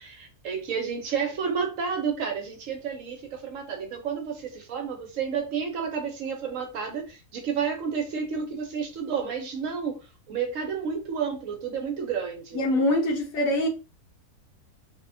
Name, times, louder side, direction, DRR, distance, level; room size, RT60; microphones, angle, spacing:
voice 1, 0.0-10.0 10.3-12.6, right 6 dB, 70° right, 0.9 m, -31 dB
voice 2, 12.5-13.7, left 1 dB, 70° left, 1.0 m, -24 dB
2.6 x 2.1 x 2.5 m
omnidirectional pair, 1.6 m